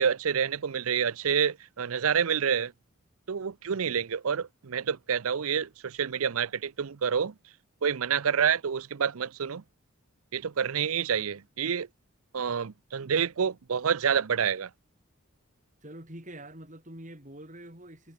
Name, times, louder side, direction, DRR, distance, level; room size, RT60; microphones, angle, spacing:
voice 1, 0.0-2.7 3.3-7.3 7.8-9.6 10.3-11.9 12.3-14.7, right 7 dB, 75° right, 0.6 m, -28 dB
voice 2, 15.8-18.1, right 1 dB, 35° right, 5.4 m, -45 dB
head